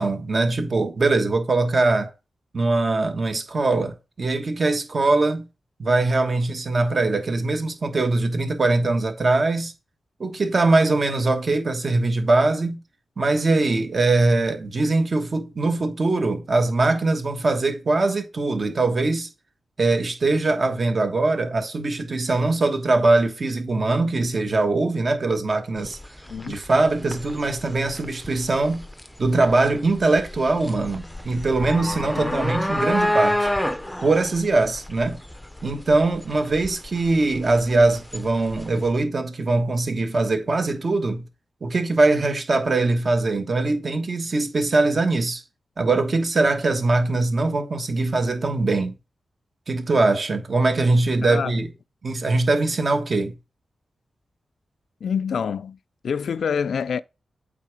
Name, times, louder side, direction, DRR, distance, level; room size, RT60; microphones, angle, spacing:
voice 1, 0.0-2.1 2.5-5.4 5.8-9.7 10.2-12.8 13.2-19.3 19.8-26.0 26.5-28.8 29.2-33.5 34.0-35.2 35.6-41.3 41.6-45.4 45.8-48.9 49.7-51.7 52.0-53.3, right 3 dB, 45° right, 1.2 m, -22 dB
sound 1, 25.8-38.9, left 1 dB, 5° left, 0.6 m, -30 dB
voice 2, 26.3-26.6 32.2-32.5 51.2-51.6 55.0-55.8 56.0-57.0, left 6 dB, 80° left, 0.3 m, -27 dB
8.4 x 3.7 x 4.8 m
wide cardioid pair, 110°, 0 cm